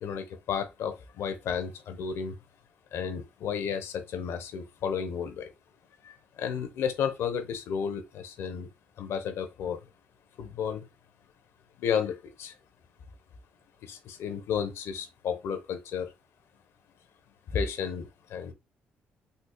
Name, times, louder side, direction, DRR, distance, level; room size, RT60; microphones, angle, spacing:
voice 1, 0.0-2.3 2.9-5.5 6.0-8.7 9.0-9.8 10.4-10.8 11.8-12.5 13.8-16.1 17.5-18.5, left 7 dB, 70° left, 0.7 m, -32 dB
3.8 x 2.7 x 2.3 m
supercardioid pair, 65°, 4 cm